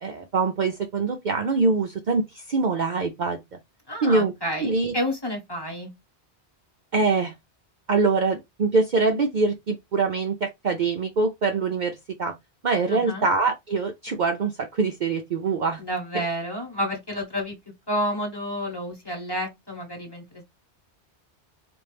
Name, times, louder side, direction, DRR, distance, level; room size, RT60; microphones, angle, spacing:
voice 1, 0.0-3.4 4.0-4.3 4.6-4.9 6.9-7.3 7.9-12.3 12.6-15.8, right 4 dB, 55° right, 0.6 m, -24 dB
voice 2, 3.9-5.9 12.9-13.3 15.8-17.6 17.9-20.4, equal, 20° left, 1.3 m, -30 dB
4.3 x 2.5 x 3.3 m
omnidirectional pair, 1.1 m